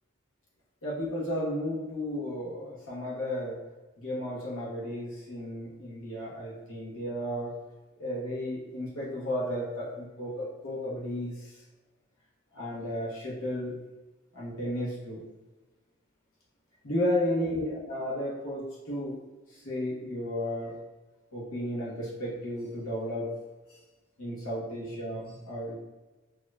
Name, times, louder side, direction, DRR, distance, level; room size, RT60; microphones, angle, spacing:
voice 1, 0.8-3.6 4.0-7.5 8.0-11.5 12.5-13.7 14.3-15.2 16.8-19.2 19.5-20.8 21.3-23.3 24.2-25.7, left 1 dB, 85° left, -6 dB, 1.3 m, -33 dB
4.9 x 2.9 x 2.3 m, 1.1 s
head